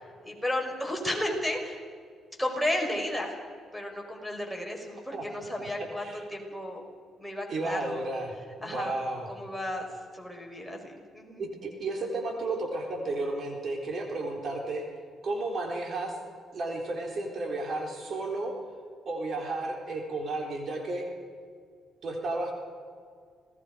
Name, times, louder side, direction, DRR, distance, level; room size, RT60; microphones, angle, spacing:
voice 1, 0.2-1.8 2.4-3.4 3.7-6.8 7.2-8.0 8.6-8.9 9.3-9.8 10.1-11.5, left 1 dB, ahead, 0 dB, 5.1 m, -33 dB
voice 2, 5.1-6.2 7.5-8.3 8.6-9.3 11.4-14.8 15.2-16.1 16.5-18.5 19.1-21.1 22.0-22.5, right 2 dB, 55° right, 1 dB, 3.9 m, -33 dB
27.5 x 19.0 x 5.2 m, 2.1 s
cardioid pair, 90°, 0 cm